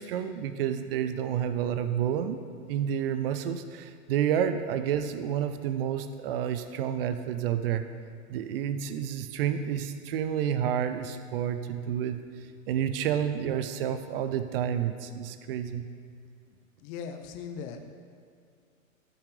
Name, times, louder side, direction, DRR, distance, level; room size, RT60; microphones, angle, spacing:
voice 1, 0.0-2.4 2.7-7.9 8.3-12.2 12.7-15.9, right 9 dB, 45° right, 10 dB, 0.6 m, -29 dB
voice 2, 16.5-17.9, left 6 dB, 25° left, 6 dB, 0.6 m, -40 dB
13.0 x 5.7 x 3.3 m, 2.3 s
hypercardioid pair, 140°, 41 cm